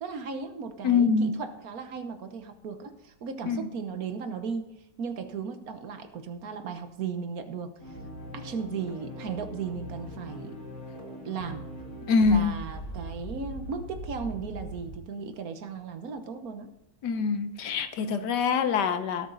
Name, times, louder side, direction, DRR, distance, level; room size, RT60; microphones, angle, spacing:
voice 1, 0.0-8.0 8.3-10.6 11.2-11.7 12.2-16.7 18.1-18.3, right 5 dB, 55° right, 8 dB, 1.4 m, -36 dB
voice 2, 0.8-1.3 3.5-3.7 12.1-12.5 17.0-19.3, left 5 dB, 65° left, 10 dB, 1.4 m, -24 dB
sound 1, 7.8-15.0, right 1 dB, 45° left, 3.0 m, -40 dB
17.0 x 7.2 x 3.9 m, 0.83 s
omnidirectional pair, 2.0 m